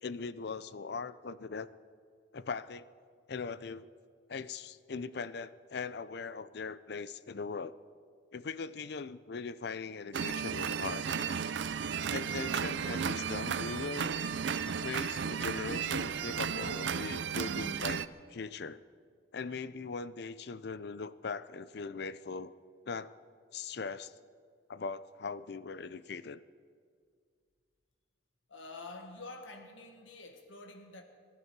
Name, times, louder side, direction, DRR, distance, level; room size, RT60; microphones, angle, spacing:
voice 1, 0.0-1.7 2.3-2.9 3.3-3.9 4.3-7.8 8.3-11.1 12.1-14.2 14.8-18.0 18.3-18.8 19.3-22.5 22.9-23.1 23.5-24.1 24.7-26.4, left 4 dB, 55° left, 16 dB, 0.5 m, -40 dB
sound 1, 10.1-18.1, right 6 dB, 65° right, 0.5 m, -34 dB
voice 2, 28.5-31.0, left 2 dB, 85° left, 5 dB, 1.6 m, -47 dB
25.0 x 12.0 x 4.7 m, 2.1 s
head